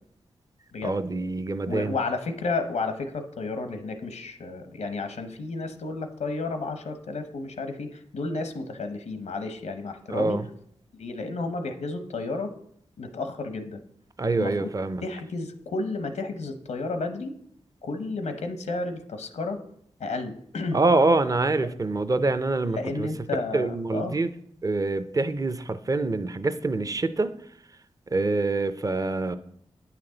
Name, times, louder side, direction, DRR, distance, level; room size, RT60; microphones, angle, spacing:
voice 1, 0.8-2.0 10.1-10.4 14.2-15.0 20.7-23.1 23.5-24.3 24.6-27.3 28.1-29.4, right 3 dB, 30° right, 12 dB, 0.5 m, -25 dB
voice 2, 1.6-10.4 11.0-12.5 13.0-13.8 14.3-14.7 15.0-17.4 17.8-19.6 20.0-20.8 22.6-24.2, left 3 dB, 85° left, 8 dB, 0.8 m, -32 dB
8.8 x 5.9 x 3.9 m, 0.68 s
cardioid pair, 50°, 11 cm